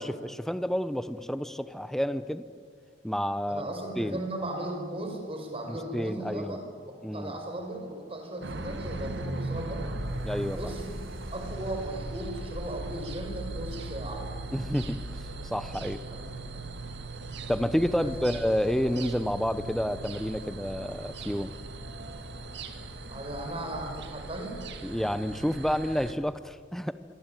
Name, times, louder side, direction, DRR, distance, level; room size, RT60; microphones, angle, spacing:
voice 1, 0.0-2.4 3.0-3.7 4.0-4.2 5.7-6.6 7.0-7.4 10.2-10.7 14.5-15.0 15.4-16.0 17.5-21.5 24.8-26.9, equal, ahead, 12 dB, 0.8 m, -29 dB
voice 2, 3.5-10.0 10.5-11.0 11.3-14.3 16.0-16.2 18.0-18.2 23.1-24.6, right 1 dB, 30° right, 3 dB, 5.6 m, -37 dB
sound 1, 8.4-26.1, right 2 dB, 60° right, 2.3 m, -39 dB
sound 2, 9.9-20.6, right 1 dB, 85° right, 1.7 m, -44 dB
25.5 x 25.0 x 9.1 m, 2.1 s
head